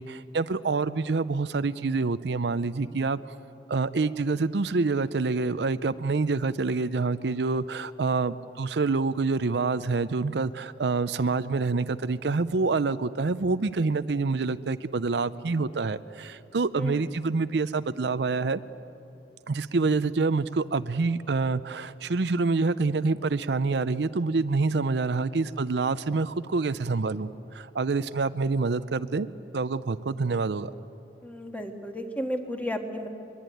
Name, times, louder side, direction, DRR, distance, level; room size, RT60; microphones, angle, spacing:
voice 1, 0.0-3.2 3.7-18.6 19.5-29.3 29.5-30.7, right 3 dB, 70° right, 13 dB, 0.6 m, -27 dB
voice 2, 16.7-17.1 31.2-33.1, equal, 10° left, 4 dB, 1.7 m, -33 dB
22.5 x 22.5 x 9.2 m, 2.7 s
head